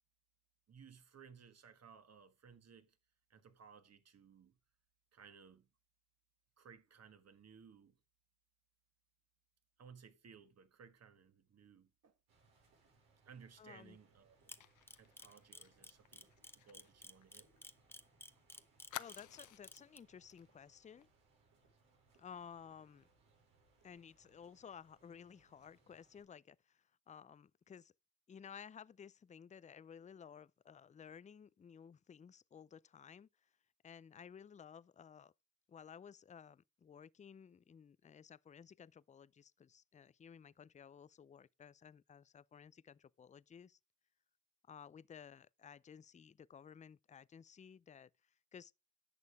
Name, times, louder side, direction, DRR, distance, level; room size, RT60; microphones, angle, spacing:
voice 1, 0.7-3.0 3.3-4.6 5.1-5.7 6.6-8.0 9.8-12.2 13.2-14.4 15.0-17.5, right 6 dB, 50° right, 1.6 m, -60 dB
sound 1, 12.3-26.2, right 3 dB, 90° right, 5.2 m, -73 dB
voice 2, 13.6-14.0 19.0-21.1 22.2-23.1 23.8-27.9 28.3-33.5 33.8-35.3 35.7-43.8 44.7-48.7, left 7 dB, 20° left, 0.4 m, -56 dB
Camera, 14.5-20.0, left 1 dB, 5° left, 0.8 m, -53 dB
Fire, 14.6-18.0 18.3-18.4 18.9-19.9 20.3-20.5 20.8-21.0, left 12 dB, 65° left, 0.7 m, -53 dB
11.0 x 6.7 x 3.5 m
cardioid pair, 70°, 33 cm